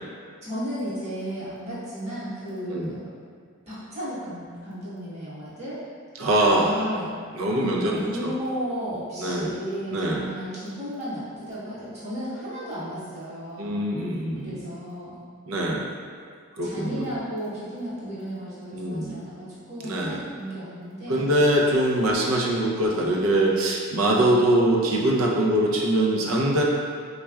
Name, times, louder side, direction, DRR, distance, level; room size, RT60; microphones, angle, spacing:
voice 1, 0.4-3.0 3.7-5.8 6.5-7.2 7.5-13.8 14.4-15.2 16.6-21.3, equal, 35° right, -11 dB, 1.1 m, -34 dB
voice 2, 6.2-7.0 7.3-8.3 9.2-9.5 9.9-10.2 13.6-14.6 15.5-15.9 16.6-17.1 18.7-19.2 19.8-20.2 21.1-26.6, right 1 dB, 80° right, -2 dB, 0.5 m, -23 dB
4.2 x 2.4 x 2.2 m, 2.2 s
head